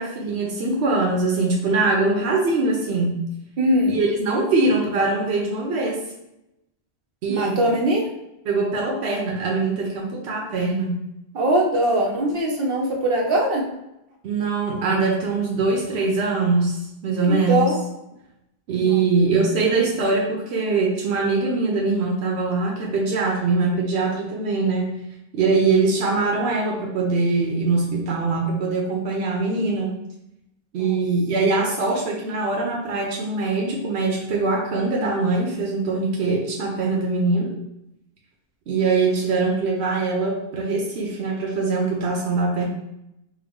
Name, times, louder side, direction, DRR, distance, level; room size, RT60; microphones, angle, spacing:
voice 1, 0.0-3.3 3.9-6.0 7.2-7.6 8.5-11.0 14.2-17.7 18.7-24.9 25.3-29.9 30.7-37.6 38.7-42.6, right 3 dB, 85° right, -1 dB, 0.9 m, -22 dB
voice 2, 3.6-4.0 7.3-8.1 11.3-13.7 17.3-17.8 18.7-19.0, right 1 dB, 65° right, -1 dB, 1.0 m, -21 dB
4.5 x 2.0 x 3.5 m, 0.88 s
omnidirectional pair, 1.1 m